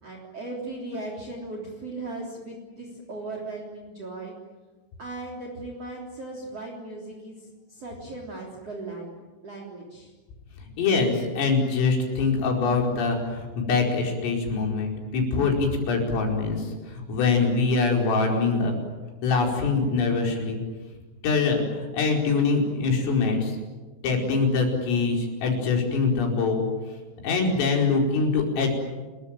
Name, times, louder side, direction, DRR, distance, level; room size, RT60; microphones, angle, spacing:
voice 1, 0.0-4.3 5.0-9.2 9.4-10.1, right 2 dB, 35° right, 1 dB, 4.0 m, -37 dB
voice 2, 10.8-18.7 19.2-20.6 21.2-23.6 24.0-26.7 27.2-28.7, left 4 dB, 85° left, 1 dB, 7.6 m, -24 dB
29.0 x 22.5 x 9.0 m, 1.3 s
omnidirectional pair, 5.7 m